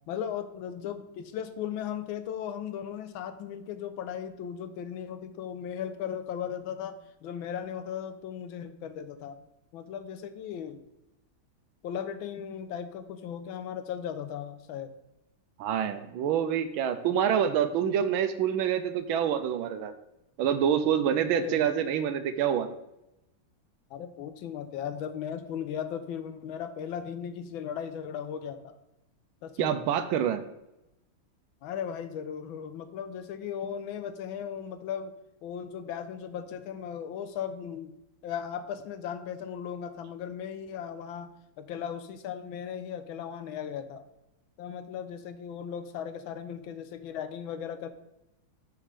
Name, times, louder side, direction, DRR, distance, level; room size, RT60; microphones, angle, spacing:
voice 1, 0.1-9.4 9.7-10.8 11.8-14.9 21.3-21.7 23.9-28.7 29.4-29.8 31.6-35.1 35.4-37.9 38.2-41.3 41.6-44.0 44.6-47.9, left 8 dB, 80° left, 10 dB, 1.4 m, -37 dB
voice 2, 15.6-19.9 20.4-22.7 29.6-30.4, right 9 dB, 80° right, 10 dB, 1.4 m, -26 dB
6.5 x 5.8 x 5.0 m, 0.90 s
omnidirectional pair, 2.3 m